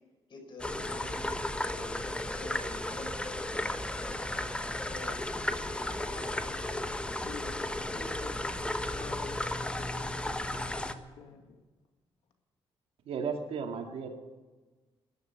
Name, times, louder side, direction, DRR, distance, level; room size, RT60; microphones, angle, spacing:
voice 1, 0.3-6.8, left 3 dB, 50° left, 4 dB, 4.8 m, -48 dB
sound 1, 0.6-10.9, left 1 dB, 10° left, 1.0 m, -34 dB
voice 2, 7.2-11.6, left 5 dB, 80° left, 5 dB, 2.0 m, -49 dB
voice 3, 13.1-14.1, right 6 dB, 75° right, 4 dB, 2.3 m, -34 dB
13.0 x 11.0 x 9.4 m, 1.2 s
cardioid pair, 105°, 10 cm